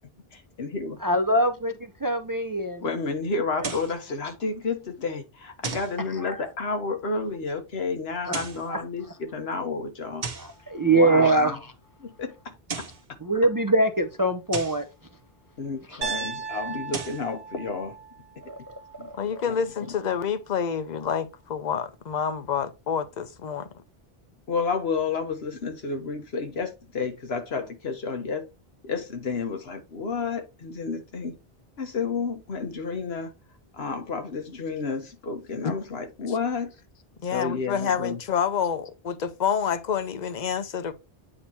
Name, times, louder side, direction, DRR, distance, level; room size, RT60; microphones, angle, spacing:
voice 1, 0.3-1.0 2.8-10.2 10.8-11.6 12.0-13.2 15.6-18.0 19.0-19.1 19.4-19.6 24.5-28.5 28.8-31.4 31.8-33.3 33.7-36.7 37.3-38.2, left 4 dB, 85° left, 1.4 m, -31 dB
voice 2, 1.0-2.9 3.6-3.7 6.1-6.4 8.3-8.4 8.7-8.8 10.4-11.7 13.2-14.9 15.9-16.1 18.5-19.2, right 2 dB, 25° right, 0.4 m, -24 dB
sound 1, 3.6-4.0 5.6-6.0 8.2-8.7 10.2-10.6 12.5-13.1 14.5-14.9 16.7-17.3, right 5 dB, 50° right, 1.0 m, -35 dB
Piano, 16.0-20.1, right 5 dB, 70° right, 1.3 m, -37 dB
voice 3, 19.1-23.8 35.6-35.7 37.2-40.9, left 7 dB, 50° left, 0.8 m, -28 dB
8.6 x 2.9 x 4.2 m
omnidirectional pair, 1.0 m